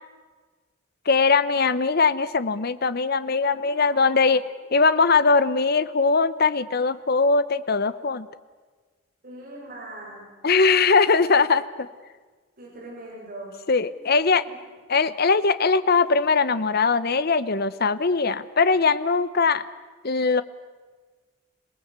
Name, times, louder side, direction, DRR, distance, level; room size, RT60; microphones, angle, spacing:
voice 1, 1.1-8.3 10.4-11.9 13.7-14.5 14.9-19.6 20.0-20.4, left 4 dB, 50° left, 14 dB, 0.8 m, -21 dB
voice 2, 3.5-4.5 9.2-10.9 12.6-13.5 13.9-14.6, right 1 dB, 45° right, -4 dB, 7.8 m, -42 dB
27.0 x 18.5 x 8.1 m, 1.4 s
head